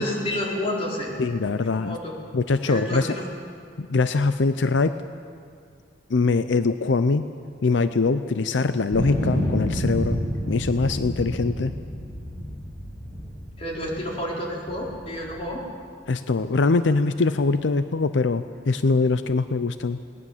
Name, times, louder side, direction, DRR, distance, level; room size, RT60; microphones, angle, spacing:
voice 1, 0.0-1.2 1.8-2.1 2.7-3.2 13.6-15.6, left 1 dB, 35° left, -2 dB, 4.1 m, -29 dB
voice 2, 1.2-2.0 2.3-3.2 3.8-5.0 6.1-7.3 7.6-10.2 10.5-11.7 16.1-20.0, left 3 dB, 85° left, 11 dB, 0.6 m, -22 dB
sound 1, 8.9-14.1 14.7-15.5, equal, 50° left, 6.7 m, -29 dB
20.5 x 18.5 x 7.3 m, 2.3 s
head